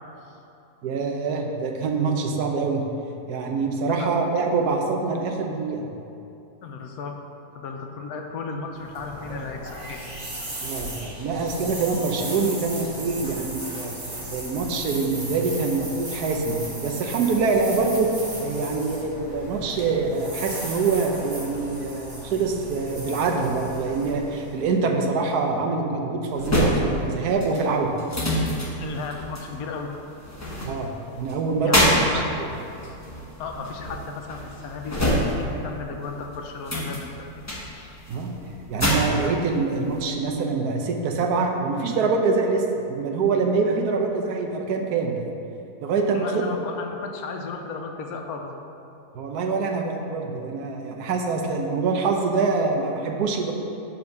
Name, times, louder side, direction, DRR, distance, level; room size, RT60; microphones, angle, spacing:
voice 1, 0.8-2.8 3.3-5.9 10.6-13.9 14.3-18.1 18.4-27.9 30.6-31.9 38.1-38.3 38.7-45.2 45.8-46.3 49.1-53.5, right 4 dB, 80° right, 2 dB, 1.3 m, -25 dB
voice 2, 6.6-7.2 7.5-10.0 10.3-10.6 28.8-29.9 31.6-32.6 33.4-37.3 37.7-38.3 46.1-48.5, left 4 dB, 75° left, 3 dB, 1.2 m, -35 dB
sound 1, 8.7-24.9, right 1 dB, 45° right, 1.9 m, -36 dB
sound 2, 26.3-35.7 36.0-40.0, equal, 10° left, 0.9 m, -27 dB
5.3 x 5.2 x 6.6 m, 2.8 s
omnidirectional pair, 1.6 m